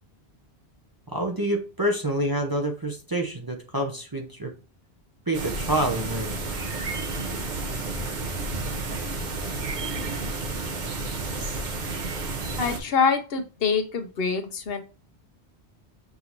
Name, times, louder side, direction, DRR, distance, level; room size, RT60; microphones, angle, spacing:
voice 1, 1.1-4.5 5.3-6.4, right 1 dB, 30° right, 1 dB, 0.5 m, -27 dB
sound 1, 5.3-12.8, right 3 dB, 45° right, 0.9 m, -31 dB
voice 2, 12.6-14.8, left 5 dB, 65° left, 6 dB, 1.0 m, -25 dB
6.0 x 2.6 x 2.9 m, 0.34 s
omnidirectional pair, 1.1 m